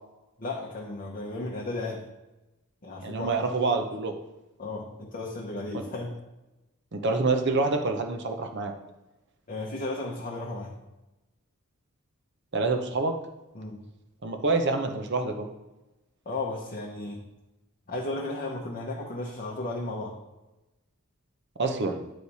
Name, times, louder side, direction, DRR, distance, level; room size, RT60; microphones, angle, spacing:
voice 1, 0.4-2.0 2.8-3.4 4.6-6.1 9.5-10.8 13.5-13.8 16.3-17.2 17.9-20.2, left 2 dB, 35° left, -3 dB, 0.8 m, -34 dB
voice 2, 3.0-4.1 6.9-8.7 12.5-13.1 14.2-15.5 21.6-22.0, right 3 dB, 50° right, 5 dB, 0.8 m, -26 dB
9.6 x 3.2 x 4.1 m, 1.0 s
head